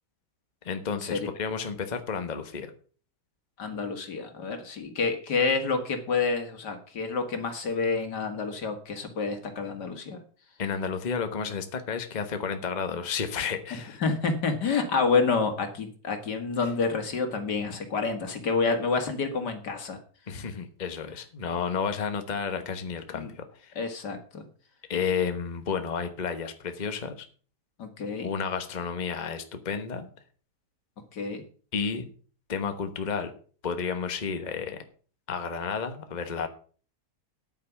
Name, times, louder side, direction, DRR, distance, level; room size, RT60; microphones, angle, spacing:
voice 1, 0.6-2.7 10.6-14.0 20.3-23.7 24.9-27.2 28.2-30.1 31.7-32.1 32.5-33.3 33.6-34.8 35.3-36.5, left 6 dB, 30° left, 8 dB, 1.2 m, -31 dB
voice 2, 3.6-10.2 13.7-20.0 23.1-23.3 23.8-24.4 27.8-28.3 31.1-31.4, left 4 dB, 80° left, 6 dB, 2.5 m, -28 dB
9.5 x 9.2 x 6.0 m, 0.41 s
omnidirectional pair, 1.8 m